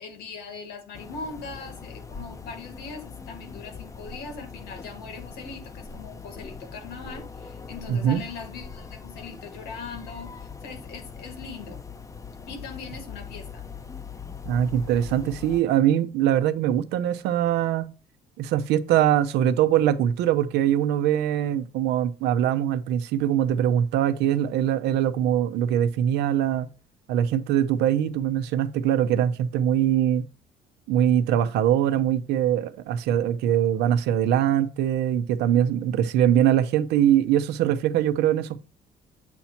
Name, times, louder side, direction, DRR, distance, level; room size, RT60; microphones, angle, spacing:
voice 1, 0.0-11.8 12.5-13.6, left 4 dB, 80° left, 1.9 m, -40 dB
sound 1, 0.9-15.6, left 5 dB, 20° left, 0.6 m, -41 dB
voice 2, 7.9-8.2 14.5-17.9 18.4-26.7 27.1-30.2 30.9-38.6, right 10 dB, 85° right, 0.7 m, -22 dB
8.0 x 2.9 x 5.7 m
cardioid pair, 110°, 17 cm